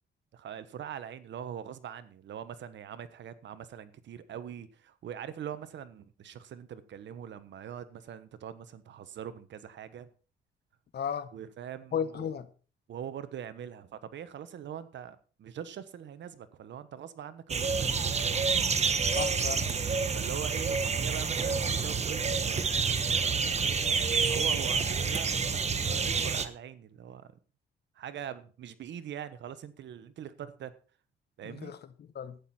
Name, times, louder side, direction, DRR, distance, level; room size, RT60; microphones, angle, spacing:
voice 1, 0.3-10.1 11.3-12.3 12.9-18.2 20.1-27.3 28.0-30.7 31.4-31.7, right 9 dB, 65° right, 1.2 m, -42 dB
voice 2, 10.9-11.3 11.9-12.5 19.1-19.7 31.4-32.4, left 8 dB, 55° left, 1.2 m, -35 dB
sound 1, 17.5-26.5, right 5 dB, 35° right, 1.2 m, -28 dB
12.0 x 9.5 x 4.3 m
cardioid pair, 90°, 20 cm